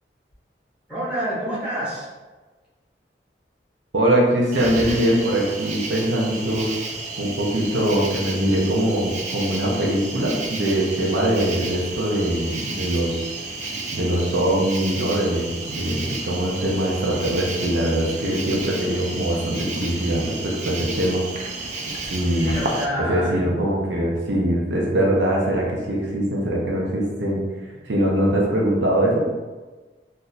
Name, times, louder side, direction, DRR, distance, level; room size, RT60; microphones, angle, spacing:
voice 1, 0.9-2.1 22.2-23.6, equal, 5° right, -10 dB, 1.4 m, -28 dB
voice 2, 3.9-6.7 7.2-13.3 13.9-21.3 22.1-22.6 23.0-27.5 27.8-29.3, right 1 dB, 80° right, -3 dB, 0.7 m, -22 dB
Cricket, 4.5-22.8, right 3 dB, 40° right, 0.4 m, -32 dB
4.0 x 2.7 x 2.4 m, 1.3 s
head